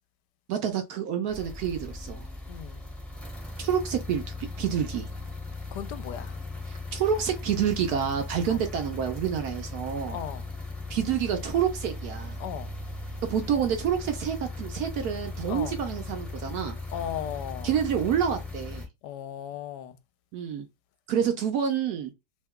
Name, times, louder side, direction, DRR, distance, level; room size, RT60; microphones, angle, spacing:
voice 1, 0.5-2.3 3.6-5.1 6.9-10.2 10.9-12.4 13.3-16.8 17.6-18.9 20.3-20.7 21.1-22.1, right 8 dB, 70° right, 1.0 m, -28 dB
sound 1, 1.3-18.9, left 2 dB, ahead, 0.7 m, -38 dB
voice 2, 2.5-2.8 5.7-6.4 8.5-8.6 10.1-10.5 12.4-12.7 15.5-15.8 16.9-17.7 19.0-20.0, left 10 dB, 80° left, 1.2 m, -36 dB
3.0 x 2.2 x 3.5 m
omnidirectional pair, 1.8 m